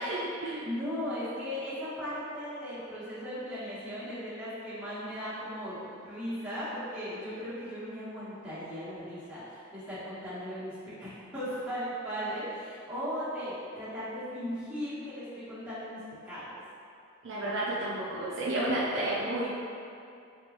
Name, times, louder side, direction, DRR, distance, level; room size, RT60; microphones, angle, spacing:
voice 1, 0.0-0.7 17.2-19.5, right 1 dB, 60° right, -6 dB, 0.4 m, -31 dB
voice 2, 0.6-16.0 16.2-16.5, equal, 5° right, -13 dB, 1.1 m, -37 dB
3.4 x 2.9 x 2.9 m, 2.5 s
head